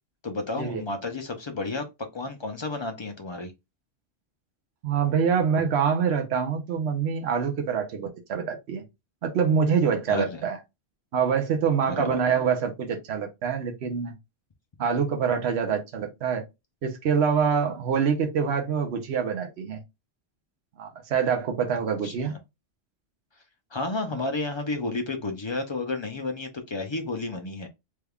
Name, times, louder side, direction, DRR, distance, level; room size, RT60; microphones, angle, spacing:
voice 1, 0.2-1.8 2.1-3.5 10.1-10.4 11.9-12.2 21.7-22.4 23.7-27.7, left 3 dB, 45° left, 0.3 m, -31 dB
voice 2, 4.8-8.8 9.2-10.6 11.1-14.1 14.8-16.4 16.8-19.8 20.8-22.3 24.1-24.2, right 6 dB, 70° right, 1.0 m, -25 dB
3.4 x 3.3 x 2.3 m
omnidirectional pair, 1.2 m